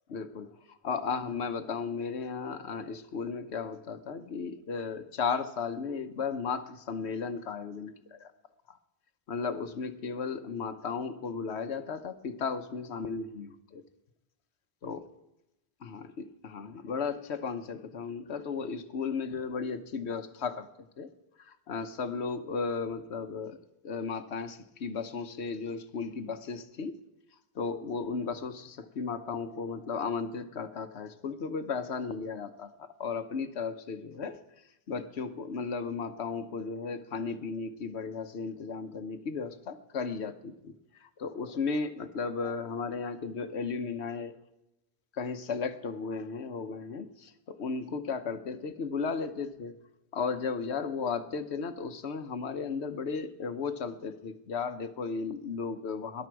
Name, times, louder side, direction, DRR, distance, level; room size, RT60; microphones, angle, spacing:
voice 1, 0.1-8.3 9.3-13.8 14.8-15.1 15.8-20.7 21.0-21.1 21.4-23.6 23.8-27.0 27.5-34.4 34.9-40.7 41.0-44.3 45.2-49.8 50.1-56.3, left 5 dB, 85° left, 10 dB, 1.2 m, -35 dB
19.5 x 11.5 x 4.7 m, 0.92 s
omnidirectional pair, 1.1 m